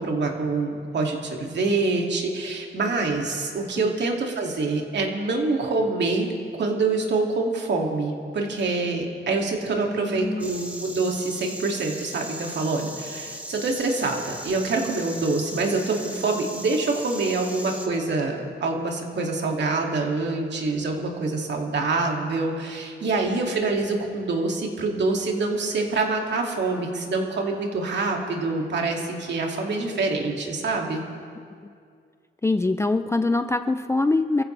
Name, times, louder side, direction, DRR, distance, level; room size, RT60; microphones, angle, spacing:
voice 1, 0.0-6.3 6.6-31.0, right 3 dB, 60° right, 1 dB, 2.5 m, -26 dB
voice 2, 9.8-10.6 32.4-34.4, left 2 dB, 15° left, 9 dB, 0.4 m, -24 dB
Insect, 10.4-17.9, right 1 dB, 5° right, 1.6 m, -38 dB
28.0 x 15.0 x 3.4 m, 2.2 s
cardioid pair, 120°, 21 cm